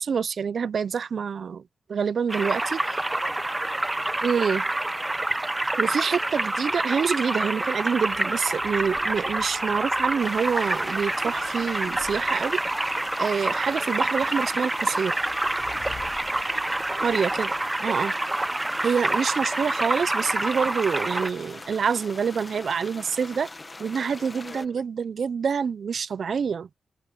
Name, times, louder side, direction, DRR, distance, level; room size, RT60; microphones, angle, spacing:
voice 1, 0.0-1.6 1.9-2.8 4.2-4.6 5.8-12.6 13.2-15.2 17.0-17.5 17.8-18.1 18.8-23.5 23.8-26.7, right 6 dB, 70° right, 0.5 m, -26 dB
sound 1, 2.3-21.3, right 2 dB, 20° right, 0.8 m, -27 dB
voice 2, 2.4-4.7 5.0-5.2 5.6-5.8 13.6-13.8 16.6-17.9 24.1-24.8, left 4 dB, 50° left, 6.3 m, -47 dB
sound 2, 6.5-18.7, left 7 dB, 80° left, 5.8 m, -51 dB
sound 3, 10.2-24.7, left 2 dB, 30° left, 1.3 m, -42 dB
cardioid pair, 70°, 0 cm